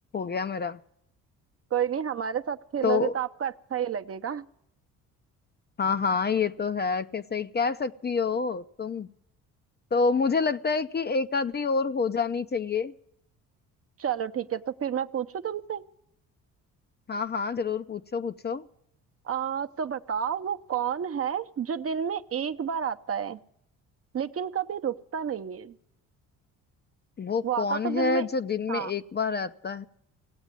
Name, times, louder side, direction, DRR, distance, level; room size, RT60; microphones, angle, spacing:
voice 1, 0.1-0.8 2.8-3.1 5.8-9.1 9.9-12.9 17.1-18.7 27.2-29.8, left 5 dB, 30° left, 11 dB, 0.5 m, -27 dB
voice 2, 1.7-4.5 14.0-15.8 19.2-23.4 24.1-25.7 27.4-28.3 28.7-28.9, right 8 dB, 40° right, 10 dB, 0.7 m, -30 dB
17.5 x 8.1 x 9.5 m, 0.77 s
supercardioid pair, 70°, 35 cm